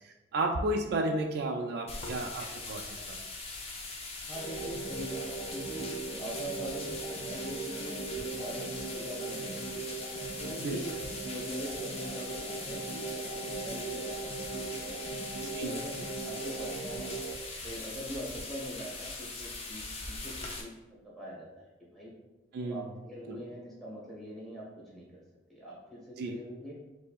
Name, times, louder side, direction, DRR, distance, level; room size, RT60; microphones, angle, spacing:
voice 1, 0.3-3.2 10.6-10.8 15.6-15.9 22.5-22.8 26.2-26.4, right 2 dB, 55° right, 4 dB, 0.3 m, -32 dB
sound 1, 1.9-20.6, left 3 dB, 30° left, 0.6 m, -41 dB
sound 2, 4.3-17.3, right 4 dB, 75° left, 1.1 m, -39 dB
voice 2, 4.3-10.0 10.4-10.9 11.2-17.1 17.6-20.7 21.1-22.1 22.6-25.2 25.5-26.7, equal, ahead, -6 dB, 1.4 m, -43 dB
6.6 x 2.7 x 2.4 m, 1.1 s
head